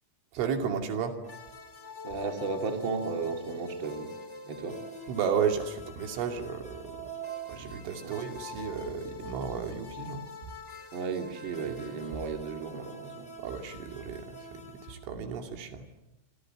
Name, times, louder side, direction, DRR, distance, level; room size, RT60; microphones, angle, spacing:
voice 1, 0.3-1.2 5.1-7.1 7.5-10.2 11.7-11.8 13.4-15.9, right 7 dB, 80° right, 5.0 m, -33 dB
sound 1, 1.2-14.9, equal, 15° left, 4.1 m, -44 dB
voice 2, 2.0-4.2 4.4-4.8 8.0-8.2 10.9-13.3, right 4 dB, 30° right, 2.5 m, -34 dB
28.5 x 25.5 x 7.8 m
omnidirectional pair, 5.6 m